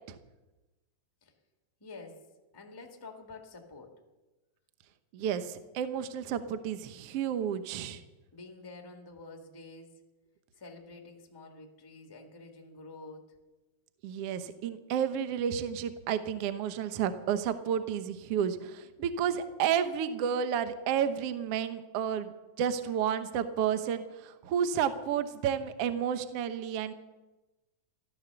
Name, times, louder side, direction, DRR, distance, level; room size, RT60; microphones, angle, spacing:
voice 1, 1.8-2.3 2.5-4.0 8.3-10.0 10.6-13.3, left 3 dB, 20° left, 2 dB, 0.6 m, -48 dB
voice 2, 5.1-8.0 14.0-26.9, right 8 dB, 85° right, 10 dB, 1.3 m, -31 dB
15.5 x 13.0 x 6.8 m, 1.1 s
omnidirectional pair, 4.1 m